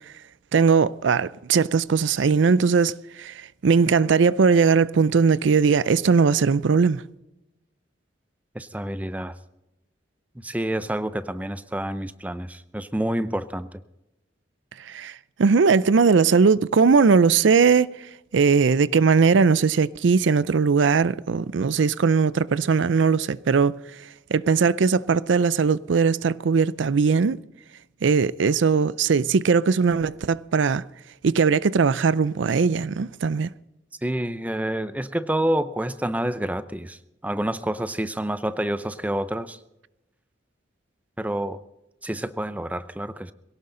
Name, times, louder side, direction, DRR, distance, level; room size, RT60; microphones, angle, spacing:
voice 1, 0.5-3.3 3.6-7.0 14.9-15.1 15.4-17.9 18.3-23.8 24.3-27.4 28.0-30.8 31.2-33.5, right 5 dB, 75° right, 0.5 m, -19 dB
voice 2, 8.5-9.4 10.4-13.8 34.0-37.0 37.2-39.6 41.2-41.6 42.0-43.3, right 1 dB, 10° right, 0.5 m, -28 dB
22.0 x 17.0 x 3.8 m
head